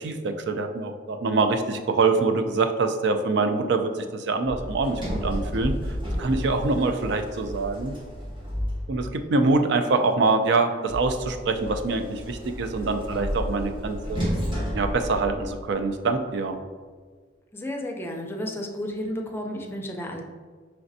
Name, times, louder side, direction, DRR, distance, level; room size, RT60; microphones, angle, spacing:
voice 1, 0.0-5.7 6.2-7.9 8.9-14.2 14.7-16.6, right 3 dB, 65° right, 7 dB, 0.4 m, -24 dB
Sliding door, 4.4-9.3 10.9-15.8, equal, 30° right, 1.0 m, -32 dB
voice 2, 17.5-20.2, left 1 dB, 15° left, 1 dB, 0.5 m, -32 dB
5.0 x 3.4 x 2.6 m, 1.5 s
head